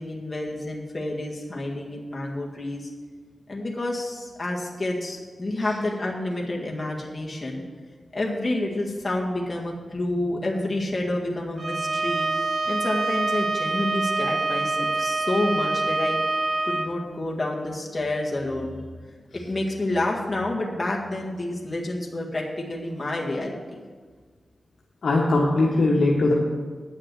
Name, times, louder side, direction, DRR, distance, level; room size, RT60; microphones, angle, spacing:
voice 1, 0.0-2.9 3.5-7.6 8.1-12.3 12.7-16.2 16.6-18.8 19.3-23.8, left 1 dB, 30° left, -2 dB, 1.8 m, -29 dB
Bowed string instrument, 11.6-16.9, right 3 dB, 45° right, 0.7 m, -26 dB
voice 2, 25.0-26.3, left 2 dB, 75° left, -3 dB, 1.3 m, -20 dB
9.2 x 6.4 x 7.7 m, 1.5 s
cardioid pair, 60°, 0 cm